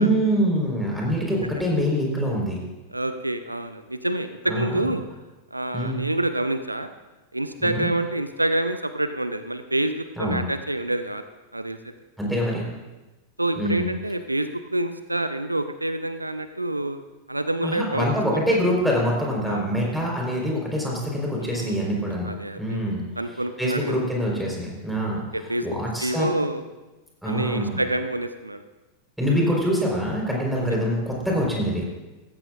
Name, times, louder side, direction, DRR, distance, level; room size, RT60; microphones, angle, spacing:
voice 1, 0.0-2.6 4.5-4.9 5.7-6.0 7.6-7.9 10.2-10.4 12.2-12.7 13.6-13.9 17.6-23.0 23.6-25.2 25.6-26.3 27.2-27.8 29.2-31.9, equal, ahead, -2 dB, 4.2 m, -25 dB
voice 2, 2.9-5.0 5.5-6.9 7.3-11.2 11.5-11.8 13.4-17.0 17.3-18.1 19.5-19.6 21.4-21.9 22.2-22.8 23.2-24.0 25.3-25.7 26.0-26.6 27.2-28.6, right 1 dB, 85° right, 10 dB, 0.5 m, -27 dB
17.0 x 14.5 x 2.5 m, 1.1 s
figure-of-eight pair, 90°, 0 cm